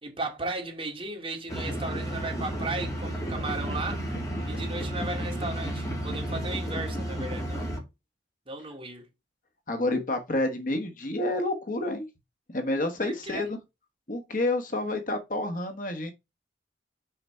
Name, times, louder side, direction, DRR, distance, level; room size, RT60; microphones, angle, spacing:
voice 1, 0.0-4.0 4.5-7.8 8.5-9.1 13.0-13.4, right 2 dB, 30° right, 2.4 m, -35 dB
sound 1, 1.5-7.8, right 1 dB, 15° left, 2.7 m, -32 dB
voice 2, 9.7-12.1 12.5-13.6 14.1-16.1, left 2 dB, 45° left, 1.3 m, -29 dB
5.8 x 5.1 x 4.4 m
head